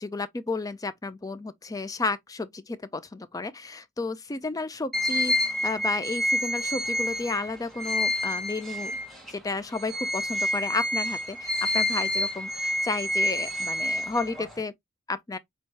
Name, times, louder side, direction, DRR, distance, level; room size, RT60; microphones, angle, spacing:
voice 1, 0.0-9.0 9.3-14.7 15.1-15.4, left 3 dB, 15° left, 0.4 m, -32 dB
sound 1, 4.9-9.3 9.7-14.6, left 1 dB, ahead, 1.3 m, -28 dB
4.7 x 3.1 x 2.9 m
head